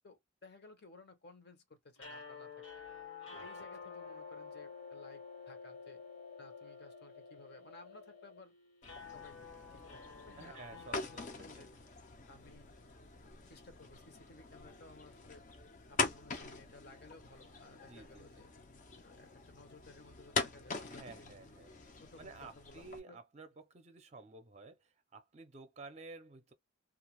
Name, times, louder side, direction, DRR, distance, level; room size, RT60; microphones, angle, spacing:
voice 1, 0.0-2.8 3.3-6.0 6.4-8.5 9.1-9.4 9.7-11.7 12.3-12.7 13.5-15.4 15.9-18.5 19.0-21.3 22.0-23.2, left 2 dB, 55° left, 0.9 m, -58 dB
sound 1, 2.0-12.2, left 5 dB, 75° left, 1.4 m, -51 dB
sound 2, 3.4-8.4, left 6 dB, 90° left, 0.5 m, -57 dB
sound 3, 8.8-23.0, left 4 dB, 40° left, 0.5 m, -43 dB
voice 2, 10.4-11.7 17.8-18.3 20.9-21.8 22.2-26.5, right 3 dB, 35° right, 0.6 m, -53 dB
2.4 x 2.3 x 3.0 m
head